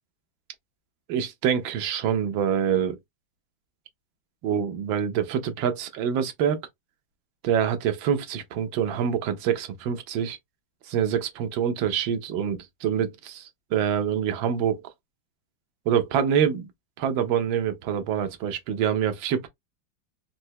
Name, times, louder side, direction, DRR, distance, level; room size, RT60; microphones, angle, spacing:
voice 1, 1.1-3.0 4.4-6.6 7.4-10.4 10.9-14.8 15.9-16.7 17.0-19.5, right 8 dB, 85° right, 1.5 m, -26 dB
4.4 x 2.0 x 2.7 m
omnidirectional pair, 2.1 m